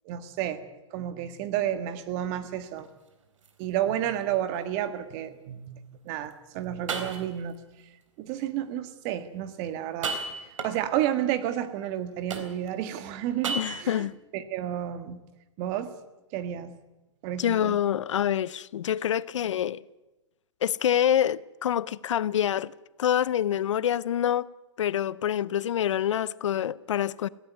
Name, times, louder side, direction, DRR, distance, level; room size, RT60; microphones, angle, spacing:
voice 1, 0.1-0.6 0.9-2.9 3.6-5.8 6.1-7.5 8.2-10.2 10.6-14.1 14.3-15.2 15.6-15.9 16.3-16.8 17.2-17.8, right 11 dB, 30° right, 1.6 m, -31 dB
sound 1, 2.5-2.9 3.4-3.5 4.2-4.3 6.3-6.4 6.9-7.6 9.9-11.0 12.3-12.9 13.4-14.1, right 4 dB, 80° right, 3.8 m, -34 dB
voice 2, 13.5-14.1 17.4-19.8 20.6-22.7 23.0-24.5 24.8-27.3, left 10 dB, 70° left, 0.7 m, -26 dB
17.5 x 16.0 x 9.6 m
hypercardioid pair, 155°, 16 cm